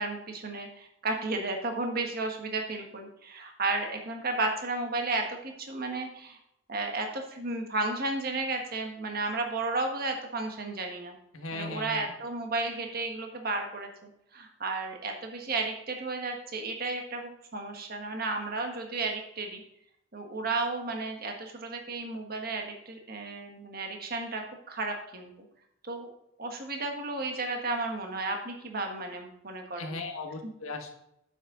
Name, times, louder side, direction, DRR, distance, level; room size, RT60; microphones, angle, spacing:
voice 1, 0.0-6.4 6.7-11.2 11.5-19.6 20.1-25.3 25.8-26.1 26.4-30.0 30.4-30.5, right 3 dB, 45° right, 3 dB, 1.4 m, -33 dB
voice 2, 11.3-12.1 29.8-30.9, left 3 dB, 85° left, 2 dB, 1.5 m, -37 dB
9.7 x 7.4 x 3.8 m, 0.77 s
head